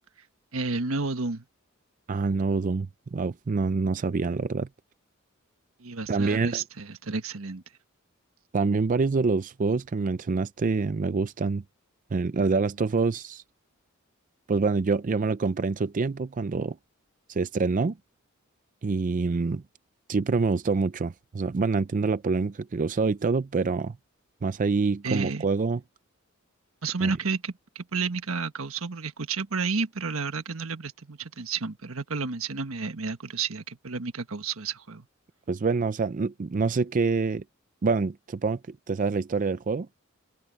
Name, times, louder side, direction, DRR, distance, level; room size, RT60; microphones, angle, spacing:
voice 1, 0.5-1.4 5.8-7.6 25.0-25.4 26.8-35.1, right 4 dB, 80° right, 1.4 m, -31 dB
voice 2, 2.1-4.7 6.1-6.6 8.5-11.6 12.1-13.4 14.5-16.8 17.3-18.0 18.8-19.6 20.1-24.0 24.4-25.8 27.0-27.1 35.5-37.4 37.8-39.9, right 4 dB, 40° right, 0.4 m, -26 dB
head